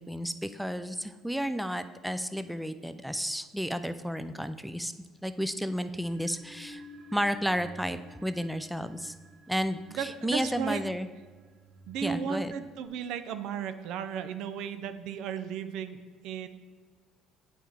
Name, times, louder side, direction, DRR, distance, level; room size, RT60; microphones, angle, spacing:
voice 1, 0.0-4.9 5.2-6.8 7.1-9.1 9.5-11.1 12.0-12.5, equal, ahead, 11 dB, 0.4 m, -32 dB
sound 1, 5.9-12.9, right 1 dB, 50° right, 1.7 m, -52 dB
voice 2, 9.9-10.9 11.9-16.5, right 7 dB, 70° right, 10 dB, 0.5 m, -35 dB
8.1 x 4.5 x 4.8 m, 1.5 s
hypercardioid pair, 65°, 0 cm